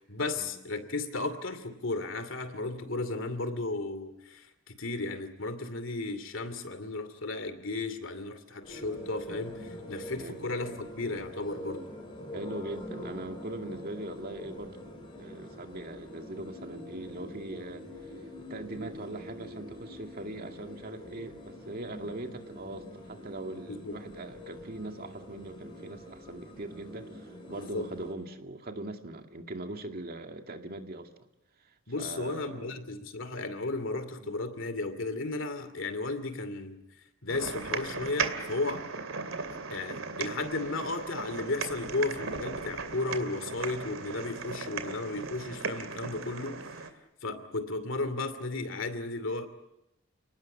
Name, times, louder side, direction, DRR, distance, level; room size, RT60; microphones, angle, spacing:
voice 1, 0.0-11.9 23.7-24.0 27.6-27.9 31.9-36.8 37.2-38.9 39.7-46.8 47.2-49.5, left 2 dB, 65° left, 11 dB, 2.6 m, -34 dB
sound 1, 8.6-28.1, left 1 dB, 25° left, 7.9 m, -45 dB
voice 2, 12.3-17.9 18.4-31.1 31.6-32.8 34.2-34.3, right 2 dB, 45° right, 5 dB, 2.2 m, -41 dB
sound 2, 37.3-46.9, right 4 dB, 80° right, 2.6 m, -37 dB
30.0 x 19.5 x 8.5 m, 0.89 s
head